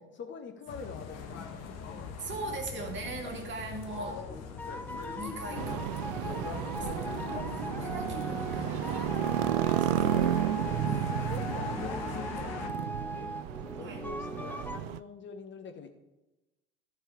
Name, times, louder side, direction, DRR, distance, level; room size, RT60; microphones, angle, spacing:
voice 1, 0.0-2.1 2.4-2.5 3.1-3.3 4.0-4.3 8.0-8.1 9.3-10.0 10.5-10.7 11.3-12.8 13.1-13.3 13.8-15.9, left 5 dB, 35° left, 7 dB, 1.5 m, -46 dB
sound 1, 0.7-12.7, left 6 dB, 50° left, 1.4 m, -41 dB
voice 2, 2.2-4.2 5.2-9.2 9.8-10.3 10.8-11.3 13.8-14.0, right 3 dB, 35° right, 2 dB, 2.2 m, -41 dB
sound 2, 4.3-14.8, equal, 5° left, 0.8 m, -39 dB
sound 3, 5.5-15.0, right 13 dB, 60° right, 0.4 m, -32 dB
13.5 x 4.8 x 4.9 m, 1.0 s
hypercardioid pair, 75°, 33 cm